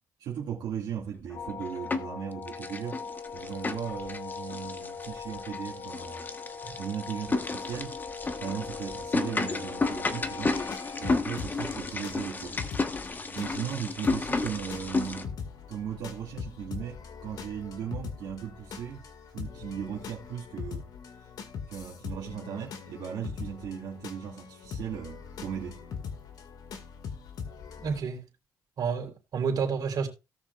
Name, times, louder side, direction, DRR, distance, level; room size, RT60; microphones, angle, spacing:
voice 1, 0.2-3.0 3.3-6.3 6.8-8.0 8.4-10.6 11.0-12.6 13.3-15.4 15.7-19.0 19.3-21.3 21.7-25.8 29.0-29.1, right 8 dB, 80° right, 2.3 m, -37 dB
sound 1, 1.3-11.1, left 5 dB, 50° left, 1.8 m, -40 dB
sound 2, 1.3-2.2 2.5-15.2, left 3 dB, 25° left, 1.2 m, -32 dB
sound 3, 10.6-28.0, left 6 dB, 65° left, 2.1 m, -42 dB
voice 2, 27.8-28.3 28.8-30.1, right 6 dB, 65° right, 3.8 m, -30 dB
18.0 x 6.3 x 2.5 m
cardioid pair, 100°, 7 cm